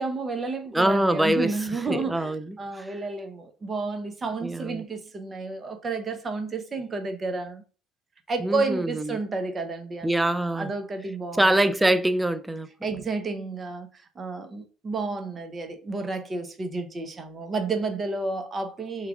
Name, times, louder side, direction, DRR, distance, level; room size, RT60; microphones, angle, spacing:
voice 1, 0.0-7.6 8.3-10.1 10.4-11.4 12.8-19.1, right 3 dB, 30° right, 0.7 m, -31 dB
voice 2, 0.7-1.5 1.9-2.9 4.4-4.8 8.4-9.2 10.0-10.7 11.4-12.7, right 1 dB, 10° right, 0.4 m, -24 dB
3.1 x 2.3 x 3.5 m
hypercardioid pair, 75°, 0 cm